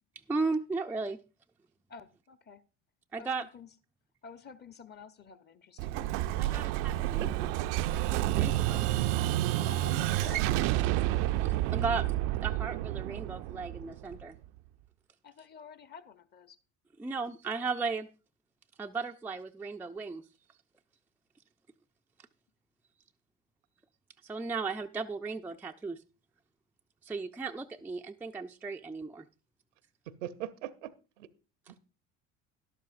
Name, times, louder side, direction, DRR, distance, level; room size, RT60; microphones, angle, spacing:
voice 1, 0.3-1.2 3.1-3.5 6.4-7.3 8.1-8.9 11.0-11.1 11.4-12.1 12.4-14.4 17.0-18.1 18.8-20.2 24.2-26.0 27.0-29.3, right 4 dB, 5° right, 0.4 m, -35 dB
voice 2, 1.9-2.6 3.2-3.7 4.2-6.3 9.6-10.5 15.2-16.6, left 5 dB, 25° left, 0.8 m, -49 dB
Explosion, 5.8-14.4, right 15 dB, 55° right, 0.5 m, -30 dB
voice 3, 7.0-7.5 30.1-31.3 31.7-31.8, right 11 dB, 70° right, 0.8 m, -41 dB
12.5 x 11.5 x 2.5 m
figure-of-eight pair, 65°, 38 cm